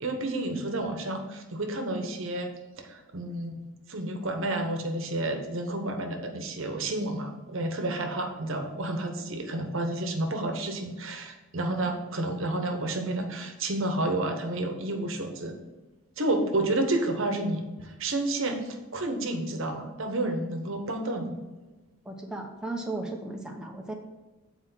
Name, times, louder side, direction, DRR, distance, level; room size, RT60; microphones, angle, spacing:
voice 1, 0.0-2.5 2.9-15.5 16.2-21.4, right 2 dB, 65° right, 4 dB, 1.0 m, -30 dB
voice 2, 22.0-23.9, right 2 dB, 5° right, 1 dB, 0.8 m, -35 dB
8.0 x 4.3 x 6.0 m, 1.2 s
head